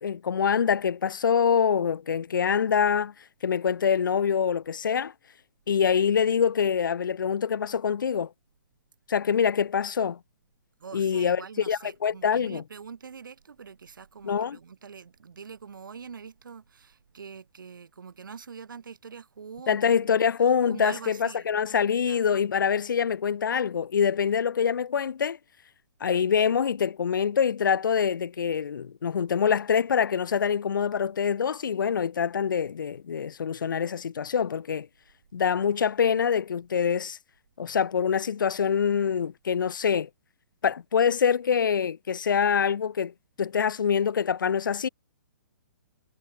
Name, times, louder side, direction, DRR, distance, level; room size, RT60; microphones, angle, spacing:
voice 1, 0.0-3.1 3.4-5.1 5.7-8.3 9.1-10.2 10.9-12.6 14.2-14.6 19.7-25.4 26.0-34.9 35.3-37.2 37.6-40.1 40.6-43.1 43.4-44.9, left 7 dB, 90° left, 0.7 m, -25 dB
voice 2, 10.8-20.3 20.7-21.6 22.0-22.5, right 6 dB, 85° right, 6.1 m, -44 dB
hypercardioid pair, 165°, 11 cm